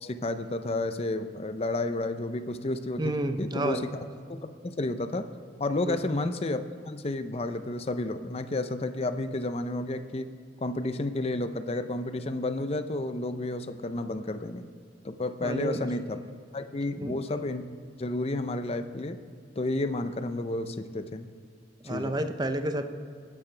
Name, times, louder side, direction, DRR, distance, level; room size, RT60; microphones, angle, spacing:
voice 1, 0.0-4.0 4.3-5.3 5.6-10.3 10.6-14.7 15.0-16.2 16.5-17.7 18.0-19.2 19.6-21.3 21.8-22.2, left 2 dB, 35° left, 10 dB, 0.6 m, -31 dB
voice 2, 3.0-3.9 5.8-6.0 15.4-15.9 17.0-17.2 21.8-22.8, right 1 dB, 25° right, 8 dB, 0.6 m, -30 dB
21.0 x 9.8 x 3.3 m, 2.1 s
head